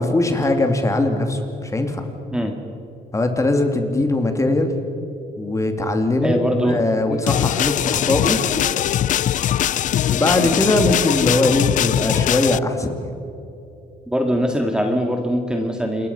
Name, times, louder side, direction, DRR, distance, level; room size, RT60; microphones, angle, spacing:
voice 1, 0.0-2.0 3.1-4.7 5.4-8.4 10.1-13.1, left 2 dB, 20° left, 5 dB, 2.6 m, -20 dB
voice 2, 6.2-6.8 7.1-7.2 10.4-10.5 14.1-16.1, equal, 5° right, 3 dB, 2.1 m, -22 dB
sound 1, 7.3-12.6, left 11 dB, 50° left, 0.5 m, -21 dB
27.5 x 22.0 x 5.6 m, 2.8 s
cardioid pair, 110°, 17 cm